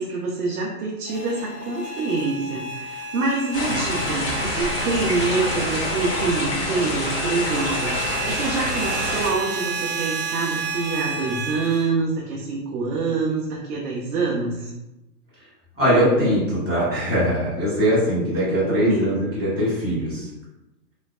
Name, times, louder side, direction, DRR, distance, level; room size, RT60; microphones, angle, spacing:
voice 1, 0.0-14.7 18.7-19.1, right 4 dB, 70° right, -3 dB, 0.7 m, -26 dB
sound 1, 1.1-11.9, right 2 dB, 45° right, 1.0 m, -31 dB
sound 2, 3.5-9.3, left 1 dB, 75° left, 1.4 m, -26 dB
voice 2, 15.8-20.3, equal, 5° left, -28 dB, 0.5 m, -21 dB
3.2 x 2.3 x 2.3 m, 0.96 s
hypercardioid pair, 175°, 47 cm